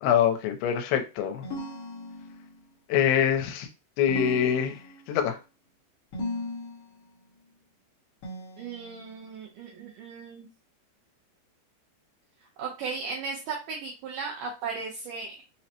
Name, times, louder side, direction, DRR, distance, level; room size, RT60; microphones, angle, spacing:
voice 1, 0.0-1.5 2.9-3.7 4.0-4.8 5.1-5.4, left 9 dB, 85° left, 6 dB, 2.7 m, -24 dB
sound 1, 1.4-2.6 4.1-5.2 6.1-7.0 8.2-9.2, equal, 70° left, 1.3 m, -37 dB
voice 2, 8.6-10.5 12.6-15.3, right 5 dB, 85° right, -1 dB, 1.9 m, -36 dB
6.2 x 2.1 x 2.8 m, 0.29 s
omnidirectional pair, 4.7 m